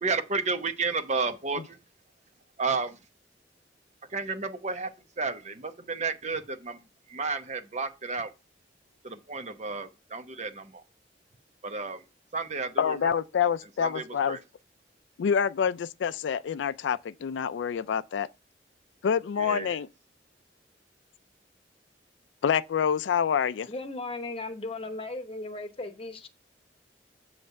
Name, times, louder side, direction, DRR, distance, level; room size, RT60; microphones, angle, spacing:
voice 1, 0.0-1.8 2.6-3.0 4.1-4.9 5.2-6.8 7.1-8.3 9.0-10.8 11.6-12.0 12.3-13.0 13.8-14.4 19.4-19.8, right 4 dB, 40° right, 0.9 m, -32 dB
voice 2, 12.8-14.4 15.2-18.3 19.0-19.9 22.4-23.7, left 7 dB, 90° left, 0.4 m, -27 dB
voice 3, 23.7-26.3, left 2 dB, 30° left, 0.9 m, -36 dB
8.0 x 3.2 x 6.4 m
head